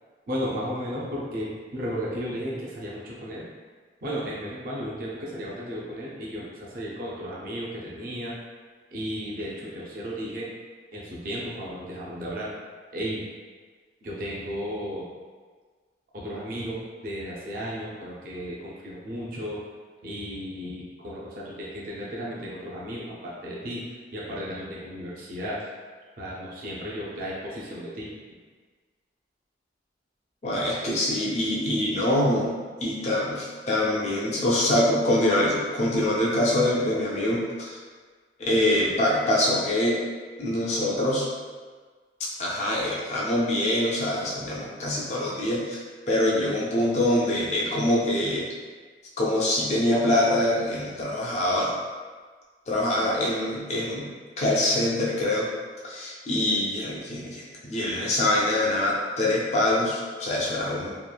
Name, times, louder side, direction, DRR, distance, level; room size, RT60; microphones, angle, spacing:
voice 1, 0.3-3.4 4.0-8.3 8.9-10.5 10.9-12.5 12.9-13.2 14.0-15.1 16.1-19.6 20.0-23.8 24.1-25.7 26.2-28.1, equal, 50° right, -5 dB, 0.5 m, -34 dB
voice 2, 30.4-37.8 38.4-40.0 40.4-41.3 42.2-48.5 49.2-51.7 52.7-54.1 54.4-55.5 55.8-60.9, left 1 dB, 40° left, -4 dB, 0.3 m, -24 dB
2.9 x 2.3 x 2.2 m, 1.5 s
head